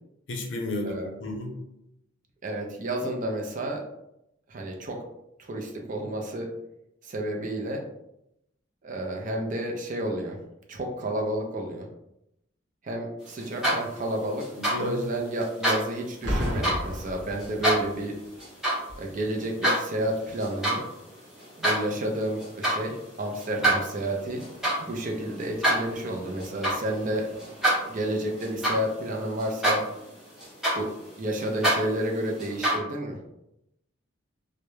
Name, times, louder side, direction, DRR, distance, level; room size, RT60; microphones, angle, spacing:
voice 1, 0.3-1.6 14.6-15.0, left 1 dB, 65° left, 2 dB, 0.5 m, -33 dB
voice 2, 2.4-3.8 4.5-5.0 5.4-6.5 7.0-7.8 8.8-10.4 10.7-11.9 12.8-14.4 14.8-18.1 19.0-20.8 21.6-24.4 24.8-27.3 27.9-29.8 30.7-30.9 31.2-33.2, right 1 dB, 40° right, 1 dB, 0.4 m, -31 dB
sound 1, 13.4-14.1 14.4-14.8 15.4-15.8 16.4-16.8 17.4-17.8 18.4-18.8 19.2-19.8 20.3-20.8 21.1-21.8 22.4-22.8 23.4-29.1 29.4-30.0 30.4-32.8, right 1 dB, ahead, 0.8 m, -27 dB
Boom, 16.2-18.0 18.9-19.1, equal, 70° right, 0.8 m, -31 dB
2.2 x 2.0 x 3.0 m, 0.83 s
head